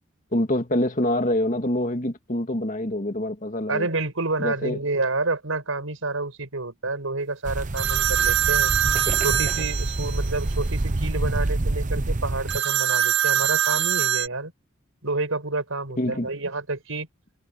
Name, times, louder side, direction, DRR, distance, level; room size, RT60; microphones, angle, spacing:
voice 1, 0.3-3.9 4.4-4.8 16.0-16.3, left 1 dB, 40° left, 2.2 m, -25 dB
voice 2, 3.7-8.7 9.2-14.5 15.0-17.1, right 3 dB, 90° right, 4.9 m, -29 dB
sound 1, 7.5-12.6, right 2 dB, 40° right, 0.8 m, -27 dB
sound 2, 7.8-10.3 12.5-14.3, right 10 dB, 55° right, 1.0 m, -23 dB
head